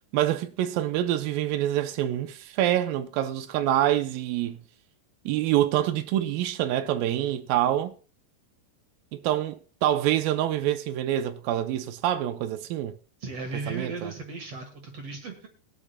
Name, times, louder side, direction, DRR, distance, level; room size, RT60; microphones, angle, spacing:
voice 1, 0.1-4.6 5.3-7.9 9.1-12.9 13.7-14.1, right 12 dB, 85° right, 2.0 m, -26 dB
voice 2, 13.2-15.5, right 4 dB, 55° right, 1.7 m, -36 dB
22.0 x 8.5 x 2.2 m
omnidirectional pair, 4.8 m